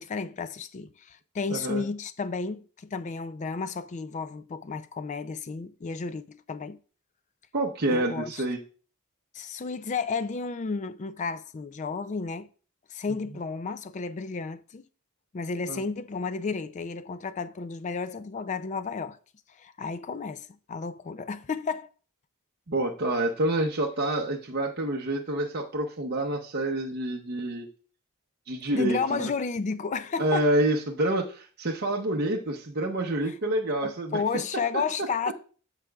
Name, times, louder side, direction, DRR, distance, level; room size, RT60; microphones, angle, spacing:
voice 1, 0.0-6.8 7.9-8.3 9.3-12.5 12.9-14.8 15.3-19.2 19.6-21.9 28.7-30.5 33.3-33.4 33.8-35.3, left 4 dB, 35° left, 0.4 m, -32 dB
voice 2, 1.5-1.8 7.5-8.6 15.7-15.8 22.7-27.7 28.5-29.3 30.2-34.2, right 1 dB, 45° right, 0.8 m, -27 dB
14.0 x 4.8 x 2.3 m
head